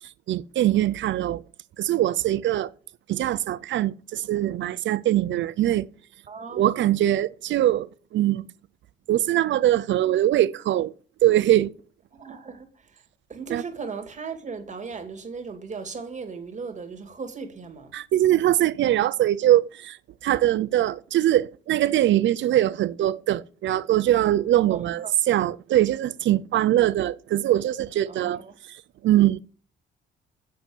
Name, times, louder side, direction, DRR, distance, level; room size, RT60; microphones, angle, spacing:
voice 1, 0.3-1.4 1.8-2.7 3.1-5.9 6.5-8.5 9.1-10.9 11.2-11.7 13.5-13.6 17.9-20.0 20.2-28.4 29.0-29.4, right 13 dB, 70° right, 0.6 m, -22 dB
voice 2, 6.3-6.8 12.1-13.0 13.3-17.9 24.7-25.1 28.1-28.6, right 5 dB, 35° right, 2.5 m, -37 dB
7.6 x 6.8 x 7.1 m
cardioid pair, 90°, 20 cm